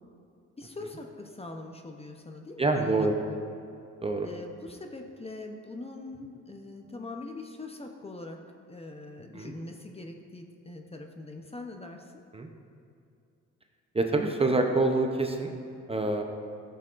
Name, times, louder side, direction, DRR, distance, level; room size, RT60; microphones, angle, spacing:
voice 1, 0.6-3.4 4.2-8.4 8.7-12.2, left 2 dB, 20° left, 3 dB, 0.7 m, -42 dB
voice 2, 2.6-3.1 4.0-4.3 9.3-9.5 12.3-12.5 13.9-15.5 15.9-16.2, right 2 dB, 20° right, 3 dB, 0.7 m, -26 dB
13.5 x 6.8 x 2.5 m, 2.4 s
cardioid pair, 90°, 30 cm